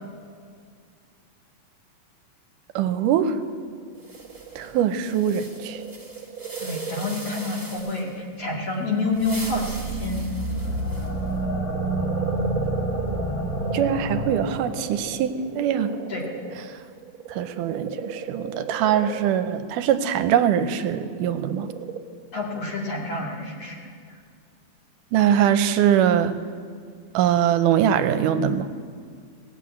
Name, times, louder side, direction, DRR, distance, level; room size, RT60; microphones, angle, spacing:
voice 1, 2.8-3.4 4.6-5.8 13.7-15.9 17.3-21.7 25.1-26.4 27.1-28.7, right 9 dB, 80° right, 10 dB, 2.2 m, -22 dB
sound 1, 3.6-8.6 9.1-10.9 11.3-22.0, right 6 dB, 50° right, 1.8 m, -37 dB
sound 2, 4.0-8.2 9.0-11.3, right 2 dB, 10° right, 1.0 m, -42 dB
voice 2, 6.6-10.2 16.1-16.3 22.3-23.8, left 2 dB, 55° left, -1 dB, 3.0 m, -28 dB
sound 3, 9.2-14.8, right 1 dB, 80° left, 5.6 m, -28 dB
18.5 x 7.9 x 8.5 m, 2.1 s
omnidirectional pair, 3.7 m